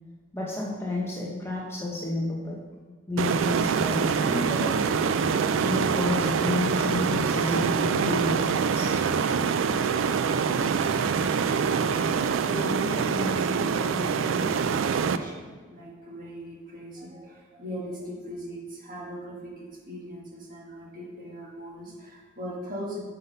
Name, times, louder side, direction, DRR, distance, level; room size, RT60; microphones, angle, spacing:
voice 1, 0.3-2.6 3.1-4.7 5.7-9.0, left 2 dB, 10° left, -3 dB, 0.8 m, -31 dB
sound 1, 3.2-15.2, right 6 dB, 75° right, 0.3 m, -25 dB
voice 2, 12.3-23.0, equal, 45° right, -3 dB, 1.6 m, -38 dB
5.6 x 5.6 x 5.4 m, 1.4 s
head